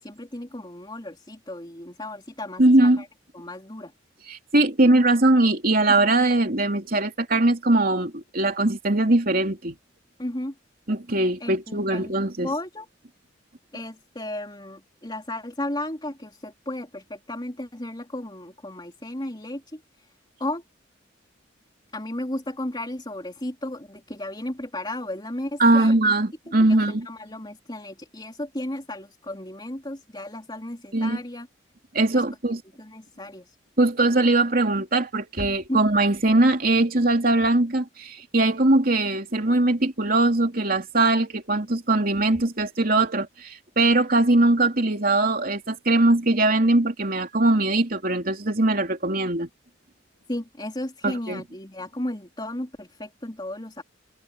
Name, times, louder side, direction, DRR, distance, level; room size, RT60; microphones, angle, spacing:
voice 1, 0.0-3.1 3.3-3.9 5.9-6.0 10.2-10.5 11.4-12.1 12.4-12.9 13.7-20.1 20.4-20.6 21.9-26.0 26.5-31.5 32.1-32.2 32.8-33.6 35.7-35.8 50.3-53.8, left 1 dB, 25° left, 3.4 m, -34 dB
voice 2, 2.6-3.0 4.3-9.7 10.9-12.5 25.6-27.1 30.9-31.2 31.9-32.6 33.8-49.5 51.0-51.4, right 2 dB, 50° right, 3.2 m, -21 dB
head